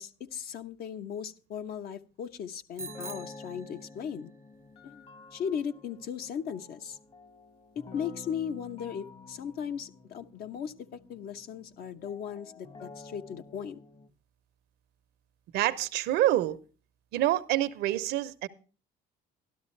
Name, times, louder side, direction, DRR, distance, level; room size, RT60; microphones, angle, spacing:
voice 1, 0.0-4.3 4.8-5.0 5.3-7.0 7.9-13.8, left 8 dB, 65° left, 8 dB, 1.0 m, -37 dB
sound 1, 2.8-14.1, left 3 dB, 35° left, 1.2 m, -50 dB
Bicycle bell, 2.8-4.3, right 4 dB, 15° right, 0.6 m, -45 dB
voice 2, 15.5-16.6 17.1-18.5, right 14 dB, 80° right, 14 dB, 0.8 m, -27 dB
12.5 x 12.5 x 3.2 m, 0.36 s
cardioid pair, 110°, 17 cm